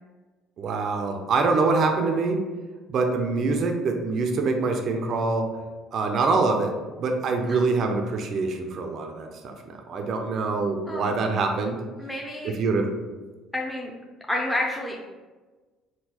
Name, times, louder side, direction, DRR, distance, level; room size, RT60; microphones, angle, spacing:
voice 1, 0.6-2.4 2.9-5.5 5.9-11.8 12.4-12.9, right 3 dB, 55° right, 4 dB, 0.4 m, -25 dB
voice 2, 12.0-12.5 13.5-13.9 14.3-15.0, left 1 dB, 5° left, -2 dB, 0.5 m, -29 dB
3.7 x 2.2 x 2.9 m, 1.3 s
hypercardioid pair, 65°, 0 cm